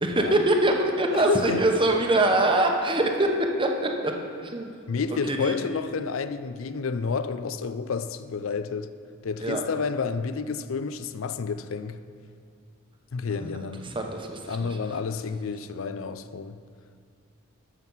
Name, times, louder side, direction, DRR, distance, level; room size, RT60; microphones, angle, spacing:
voice 1, 0.0-4.7 5.3-5.6 9.4-9.6 13.4-14.8, right 1 dB, 25° right, 0.9 m, -24 dB
voice 2, 1.1-1.6 4.9-8.9 9.2-12.0 13.1-13.9 14.5-16.6, left 5 dB, 70° left, 0.4 m, -30 dB
13.0 x 6.1 x 5.5 m
head